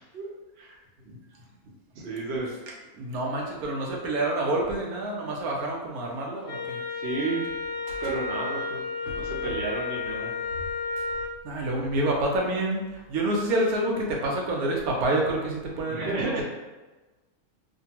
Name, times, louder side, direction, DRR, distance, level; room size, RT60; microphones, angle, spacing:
voice 1, 1.6-2.5 7.0-7.4 8.0-10.3 15.9-16.4, right 3 dB, 55° right, -3 dB, 0.8 m, -32 dB
voice 2, 2.9-6.8 7.9-8.0 9.1-9.3 11.4-16.3, right 1 dB, 80° right, -1 dB, 1.1 m, -28 dB
Wind instrument woodwind instrument, 6.5-11.4, left 4 dB, 70° left, 1.0 m, -32 dB
2.6 x 2.5 x 2.8 m, 1.2 s
omnidirectional pair, 1.5 m